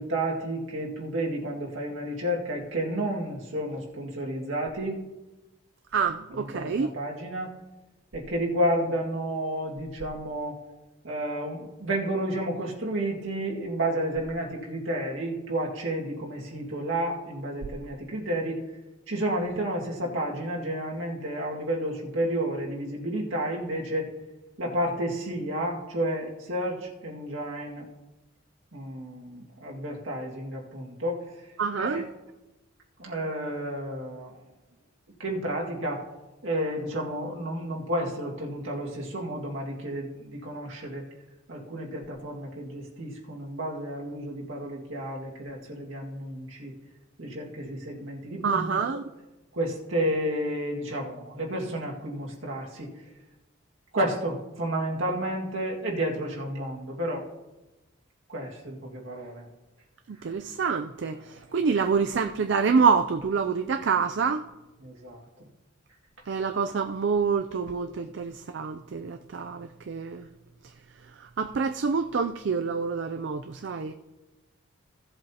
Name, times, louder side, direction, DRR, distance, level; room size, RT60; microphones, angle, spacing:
voice 1, 0.0-5.0 6.3-7.5 8.1-10.6 11.0-18.6 19.1-24.1 24.6-27.9 28.7-31.3 31.8-32.0 33.0-34.3 35.2-36.1 36.4-41.0 41.5-46.7 47.2-49.0 49.5-52.9 53.9-57.2 58.3-59.5 64.8-65.2, right 1 dB, 75° right, 2.0 m, -31 dB
voice 2, 5.9-6.9 31.6-32.1 48.4-49.1 60.1-64.4 66.3-70.3 71.2-73.9, right 5 dB, 60° right, 0.4 m, -27 dB
16.5 x 7.8 x 2.9 m
head